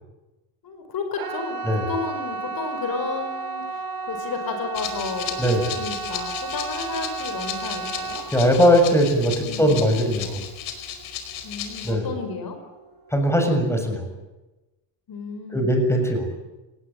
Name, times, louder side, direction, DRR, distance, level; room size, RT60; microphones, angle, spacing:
voice 1, 0.6-8.2 9.4-9.8 11.4-12.6 15.1-15.7, left 4 dB, 45° left, 7 dB, 5.2 m, -32 dB
sound 1, 1.1-12.0 12.2-12.8 13.2-13.3, right 4 dB, 45° right, 5.1 m, -33 dB
Rattle (instrument), 4.7-11.9, left 9 dB, 75° left, 5.0 m, -35 dB
voice 2, 5.4-5.7 8.3-10.4 11.8-12.1 13.1-14.1 15.5-16.3, equal, 5° left, 4 dB, 7.0 m, -20 dB
28.5 x 19.0 x 9.1 m, 1.1 s
cardioid pair, 125°, 48 cm